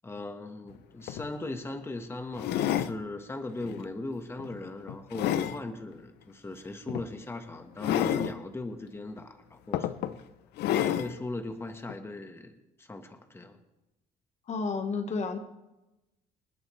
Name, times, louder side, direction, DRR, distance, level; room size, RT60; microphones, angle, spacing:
voice 1, 0.0-10.2 10.7-13.6, left 2 dB, 15° left, 6 dB, 1.3 m, -39 dB
sound 1, 0.7-0.8 1.1-1.3 2.4-3.0 3.6-3.8 4.4-5.6 6.9-7.1 7.8-8.3 9.2-9.3 9.7-10.2 10.6-11.1 11.9-12.0, left 11 dB, 75° left, 0.6 m, -29 dB
voice 2, 14.5-15.4, left 4 dB, 40° left, 6 dB, 1.3 m, -31 dB
27.0 x 9.2 x 3.2 m, 0.98 s
cardioid pair, 110°, 17 cm